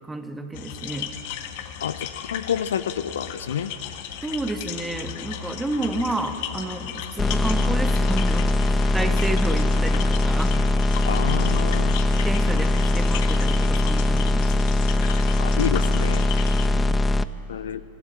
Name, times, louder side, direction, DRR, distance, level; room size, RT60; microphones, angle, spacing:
voice 1, 0.1-1.1 4.2-10.6 12.1-14.7 16.5-16.9, right 2 dB, 10° right, 7 dB, 1.7 m, -31 dB
sound 1, 0.5-16.7, left 10 dB, 50° left, 1.7 m, -36 dB
voice 2, 1.8-3.7 8.0-8.2 11.1-12.0 15.4-16.3 17.5-17.8, left 8 dB, 65° left, 13 dB, 0.7 m, -29 dB
sound 2, 7.2-17.2, left 2 dB, 15° left, 0.6 m, -21 dB
28.0 x 16.5 x 7.5 m, 2.8 s
figure-of-eight pair, 90°, 0 cm